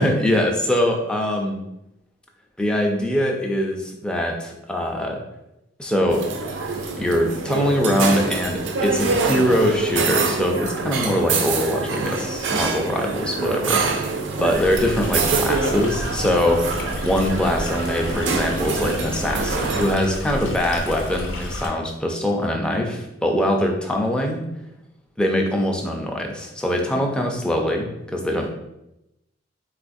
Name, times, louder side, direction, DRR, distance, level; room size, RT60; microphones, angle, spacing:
voice 1, 0.0-1.6 2.6-5.2 5.8-6.3 7.0-14.1 14.3-24.4 25.2-28.5, equal, 5° left, 1 dB, 0.3 m, -22 dB
sound 1, 6.1-19.9, right 4 dB, 70° right, 0.4 m, -25 dB
Stream, 14.5-21.7, left 1 dB, 80° left, 0.6 m, -31 dB
3.7 x 2.4 x 2.5 m, 0.88 s
head